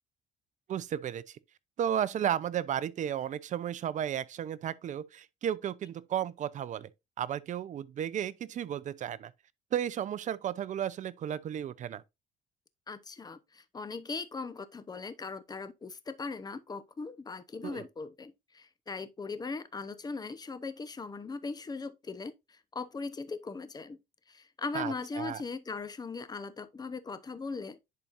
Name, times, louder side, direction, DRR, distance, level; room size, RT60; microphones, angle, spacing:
voice 1, 0.7-1.4 1.8-6.9 7.2-9.3 9.7-12.0 17.6-17.8 24.7-25.4, right 10 dB, 45° right, 0.6 m, -33 dB
voice 2, 12.9-24.0 24.3-27.8, left 4 dB, 25° left, 0.8 m, -39 dB
10.5 x 4.3 x 2.5 m
cardioid pair, 110°, 17 cm